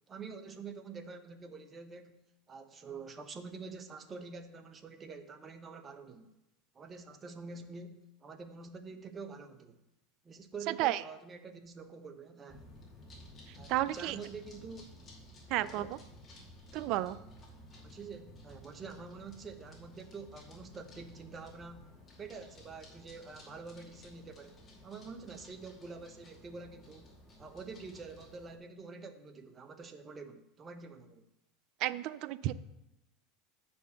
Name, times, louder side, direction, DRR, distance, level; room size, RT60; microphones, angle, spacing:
voice 1, 0.1-2.2 2.5-6.3 6.7-9.8 10.2-12.7 13.6-14.9 15.6-15.9 17.8-21.9 22.2-24.6 24.8-31.2, right 4 dB, 25° right, 8 dB, 1.0 m, -47 dB
voice 2, 10.7-11.0 13.5-14.2 15.5-16.0 16.7-17.2 31.8-32.5, right 15 dB, 60° right, 16 dB, 0.4 m, -32 dB
sound 1, 12.5-28.6, left 1 dB, 25° left, 2.6 m, -55 dB
7.8 x 5.4 x 6.8 m, 0.89 s
supercardioid pair, 105°, 0 cm